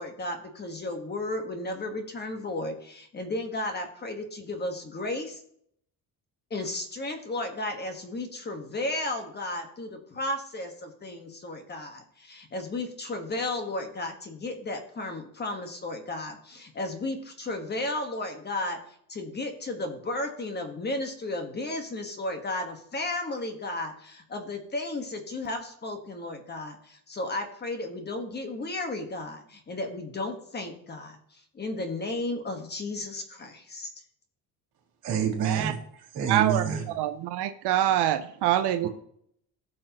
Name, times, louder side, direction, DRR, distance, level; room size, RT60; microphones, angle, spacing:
voice 1, 0.0-5.4 6.5-33.9, left 2 dB, 25° left, 5 dB, 1.4 m, -34 dB
voice 2, 35.0-37.0 38.8-38.9, right 8 dB, 70° right, 1 dB, 3.0 m, -28 dB
voice 3, 36.3-38.9, right 12 dB, 85° right, 7 dB, 0.7 m, -25 dB
17.0 x 6.4 x 3.0 m, 0.66 s
cardioid pair, 155°, 39 cm